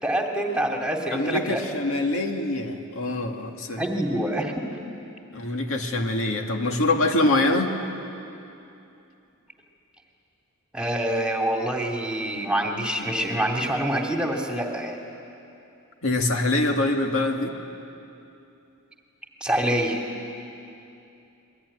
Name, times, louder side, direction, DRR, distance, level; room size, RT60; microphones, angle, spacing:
voice 1, 0.0-1.6 3.8-4.6 10.7-15.0 19.4-20.0, right 1 dB, 5° right, 1 dB, 2.5 m, -26 dB
voice 2, 1.1-3.8 5.3-7.7 16.0-17.6, left 2 dB, 65° left, 3 dB, 2.2 m, -24 dB
27.0 x 22.0 x 9.9 m, 2.7 s
head